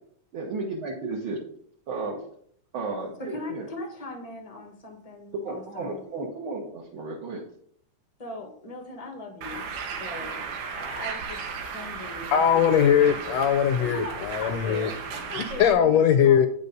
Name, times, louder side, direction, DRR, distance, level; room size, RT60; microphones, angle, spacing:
voice 1, 0.3-1.4 1.9-2.2 2.7-3.7 5.3-7.5, right 3 dB, 50° right, 1.9 m, -33 dB
voice 2, 3.2-5.9 8.2-10.4 10.8-12.8 13.9-16.4, left 2 dB, 35° left, 0.5 m, -39 dB
Bird, 9.4-15.7, right 5 dB, 85° right, 2.5 m, -35 dB
voice 3, 12.3-14.9 15.6-16.5, left 8 dB, 75° left, 1.6 m, -20 dB
9.6 x 5.4 x 5.2 m
omnidirectional pair, 3.5 m